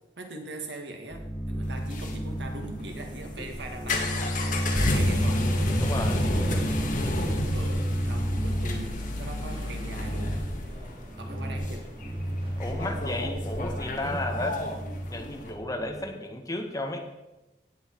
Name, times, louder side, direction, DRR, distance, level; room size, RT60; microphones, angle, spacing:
voice 1, 0.2-4.4 4.8-5.5 7.5-10.4 11.2-11.9, right 2 dB, 80° right, 4 dB, 1.9 m, -41 dB
sound 1, 1.1-8.8 9.9-10.5 11.1-11.7 11.9-16.0, equal, 5° right, 2.1 m, -31 dB
sound 2, 1.6-15.5, left 1 dB, 50° left, 1.8 m, -32 dB
voice 2, 5.8-6.3 12.6-14.6 15.1-17.0, left 2 dB, 20° left, 3 dB, 1.5 m, -33 dB
sound 3, 6.6-13.2, equal, 30° right, 2.4 m, -46 dB
16.5 x 8.4 x 4.7 m, 1.0 s
head